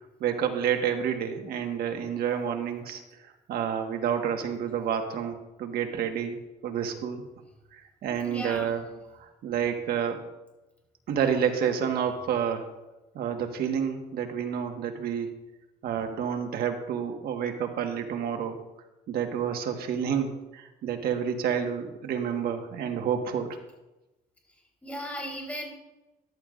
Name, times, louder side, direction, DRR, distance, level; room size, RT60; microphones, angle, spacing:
voice 1, 0.2-3.0 3.5-7.2 7.7-8.8 9.2-10.2 11.1-12.7 13.1-15.3 15.8-18.6 19.1-23.5, right 8 dB, 65° right, 4 dB, 1.5 m, -29 dB
voice 2, 8.2-8.9 24.8-25.7, equal, 10° left, -1 dB, 3.7 m, -36 dB
14.5 x 11.0 x 2.5 m, 1.0 s
cardioid pair, 110°, 17 cm